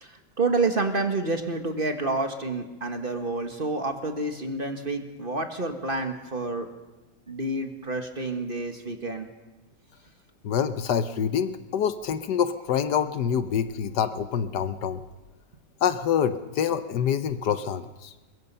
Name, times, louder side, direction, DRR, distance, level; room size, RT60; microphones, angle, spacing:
voice 1, 0.0-6.7 7.3-9.3, right 3 dB, 35° right, 5 dB, 1.6 m, -29 dB
voice 2, 10.4-15.0 15.8-18.1, left 8 dB, 75° left, 11 dB, 1.4 m, -26 dB
22.0 x 21.5 x 5.5 m, 1.1 s
omnidirectional pair, 1.8 m